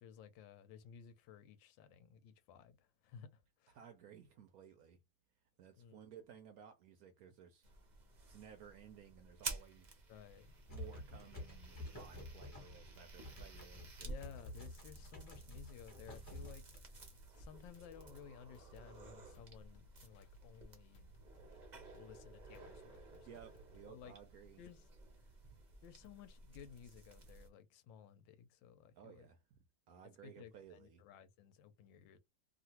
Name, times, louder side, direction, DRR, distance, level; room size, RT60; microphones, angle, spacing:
voice 1, 0.0-3.8 5.8-6.0 10.1-10.5 14.0-16.6 17.4-21.1 21.9-23.4 23.9-24.2 24.6-24.9 25.8-29.3 30.2-32.2, left 8 dB, 85° left, 1.3 m, -57 dB
voice 2, 3.7-5.0 5.6-7.7 8.3-10.0 10.7-14.2 23.3-24.6 29.0-29.4 29.9-31.0, right 8 dB, 75° right, 0.9 m, -57 dB
sound 1, 7.6-27.5, right 3 dB, 50° right, 0.5 m, -53 dB
sound 2, 10.4-17.2, left 1 dB, 20° left, 1.2 m, -51 dB
sound 3, 11.3-24.0, equal, 65° left, 0.8 m, -65 dB
3.0 x 2.4 x 2.8 m
omnidirectional pair, 2.0 m